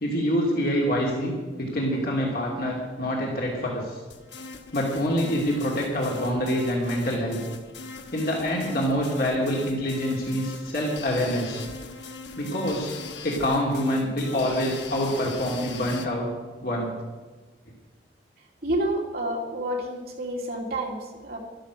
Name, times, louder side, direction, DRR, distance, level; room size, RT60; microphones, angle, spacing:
voice 1, 0.0-1.3 1.6-4.0 4.7-7.4 8.1-11.6 12.4-12.9 13.2-16.3 16.6-16.9, equal, 50° left, -2 dB, 2.6 m, -26 dB
sound 1, 4.1-16.1, left 4 dB, 80° left, 1.4 m, -41 dB
voice 2, 18.6-21.4, right 1 dB, 55° right, 0 dB, 2.8 m, -29 dB
13.0 x 12.5 x 6.3 m, 1.3 s
head